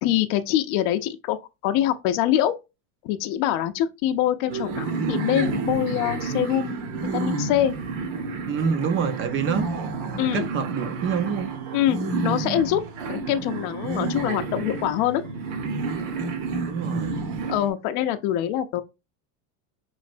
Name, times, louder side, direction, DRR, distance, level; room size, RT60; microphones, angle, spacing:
voice 1, 0.0-1.4 1.6-2.5 3.0-7.7 10.2-10.5 11.7-12.8 13.1-15.2 17.5-18.8, left 12 dB, 55° left, 0.5 m, -24 dB
sound 1, 4.5-17.7, right 4 dB, 60° right, 1.0 m, -30 dB
voice 2, 8.5-9.7 10.3-11.5 16.7-17.1, right 6 dB, 30° right, 0.5 m, -26 dB
5.1 x 3.1 x 2.5 m
supercardioid pair, 130°, 43 cm